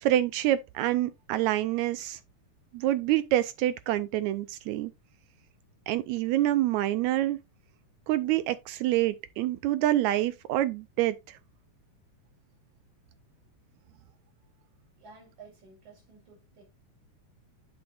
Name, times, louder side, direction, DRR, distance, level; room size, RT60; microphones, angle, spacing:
voice 1, 0.0-2.2 2.7-4.9 5.9-7.4 8.1-11.4, right 14 dB, 80° right, 1.7 m, -27 dB
voice 2, 15.0-16.6, right 4 dB, 65° right, 5.9 m, -53 dB
8.8 x 7.0 x 2.4 m
omnidirectional pair, 3.6 m